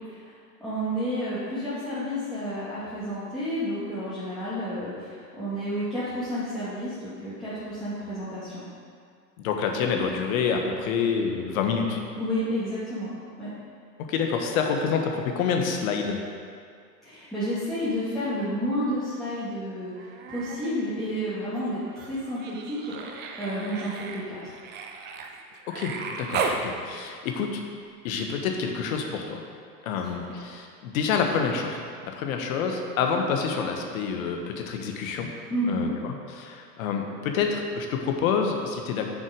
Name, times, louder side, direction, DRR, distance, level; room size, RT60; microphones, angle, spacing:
voice 1, 0.6-8.7 12.1-13.1 13.4-13.5 17.0-24.5 30.3-30.5 35.5-35.9, equal, ahead, -14 dB, 2.1 m, -31 dB
voice 2, 9.4-12.0 14.0-16.2 25.7-27.6 28.0-29.4 29.8-35.3 35.7-39.1, left 6 dB, 55° left, 3 dB, 1.3 m, -27 dB
Human voice, 19.9-20.7 21.0-26.6 28.2-28.3, right 5 dB, 20° right, 0.5 m, -35 dB
6.8 x 6.6 x 5.1 m, 2.2 s
hypercardioid pair, 105°, 50 cm